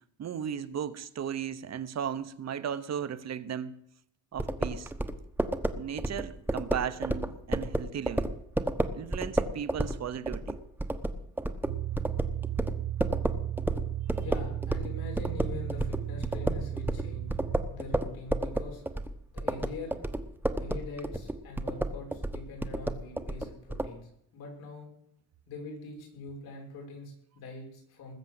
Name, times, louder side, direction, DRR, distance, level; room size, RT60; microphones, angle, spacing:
voice 1, 0.2-3.8 4.3-4.9 5.7-8.4 8.9-10.6, right 8 dB, 45° right, 1.0 m, -36 dB
sound 1, 4.4-14.9 15.2-23.9, right 1 dB, 5° right, 1.1 m, -31 dB
sound 2, 11.7-17.7, right 12 dB, 75° right, 1.1 m, -35 dB
voice 2, 14.2-17.3 17.7-18.8 19.3-20.0 20.6-24.9 25.5-28.1, left 3 dB, 90° left, 6.5 m, -43 dB
20.0 x 7.4 x 7.8 m
cardioid pair, 105°, 36 cm